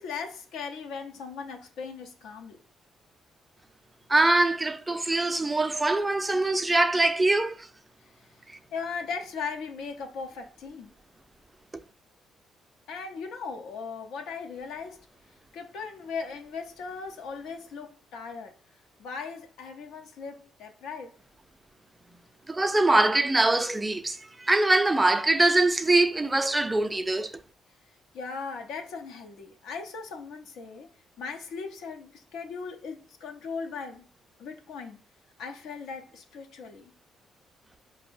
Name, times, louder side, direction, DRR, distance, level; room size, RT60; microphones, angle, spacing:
voice 1, 0.0-2.6 8.7-10.9 12.9-15.0 15.5-18.5 19.0-21.1 28.1-30.9 31.2-34.1 34.4-35.0 35.4-36.9, left 5 dB, 85° left, 0.5 m, -38 dB
voice 2, 4.1-7.7 22.5-27.4, right 2 dB, 15° right, 0.3 m, -23 dB
4.6 x 2.0 x 2.5 m
cardioid pair, 90°, 0 cm